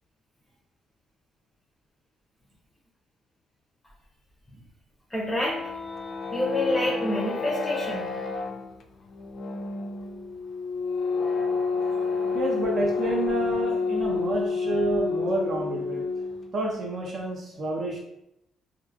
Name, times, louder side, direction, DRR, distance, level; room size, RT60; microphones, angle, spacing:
voice 1, 5.1-5.6 6.3-8.1 12.2-12.4, left 1 dB, 10° left, -5 dB, 0.7 m, -27 dB
sound 1, 5.3-16.5, left 4 dB, 55° left, 0.3 m, -29 dB
voice 2, 12.3-16.0 16.5-18.0, right 2 dB, 50° right, 0 dB, 0.8 m, -29 dB
3.0 x 2.5 x 2.4 m, 0.81 s
cardioid pair, 90°, 0 cm